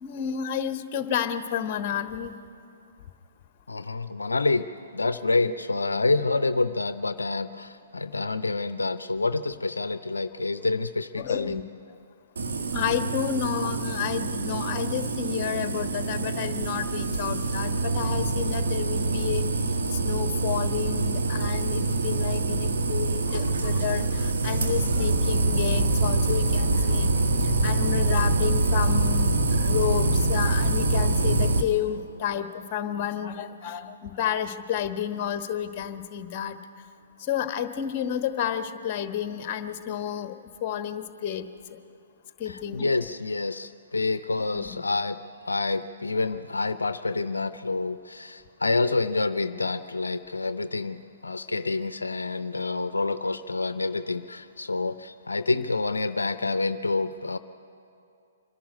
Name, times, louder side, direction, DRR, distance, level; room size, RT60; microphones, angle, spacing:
voice 1, 0.0-2.3 5.4-5.5 11.2-11.6 12.7-19.5 19.9-27.1 27.4-36.6 37.2-40.3 40.6-41.5 42.4-42.8 44.5-44.8, left 9 dB, 30° left, 9 dB, 1.2 m, -31 dB
voice 2, 3.7-4.7 4.9-11.6 42.5-45.2 45.5-57.4, left 3 dB, 75° left, 12 dB, 0.6 m, -28 dB
sound 1, 12.4-31.6, right 2 dB, 60° right, 1.7 m, -25 dB
25.0 x 11.5 x 9.6 m, 2.5 s
figure-of-eight pair, 125°, 0 cm